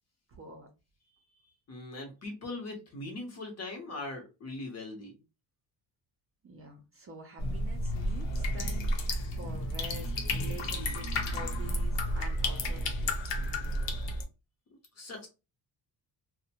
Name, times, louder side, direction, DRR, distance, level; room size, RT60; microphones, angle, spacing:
voice 1, 0.3-0.7 6.4-8.9 9.4-13.5, right 2 dB, 30° right, 2 dB, 0.4 m, -47 dB
voice 2, 1.7-5.1 15.0-15.3, left 2 dB, 35° left, 3 dB, 0.8 m, -40 dB
sound 1, 7.4-14.2, left 1 dB, 80° left, 0.8 m, -32 dB
2.5 x 2.1 x 2.8 m, 0.28 s
cardioid pair, 160°, 44 cm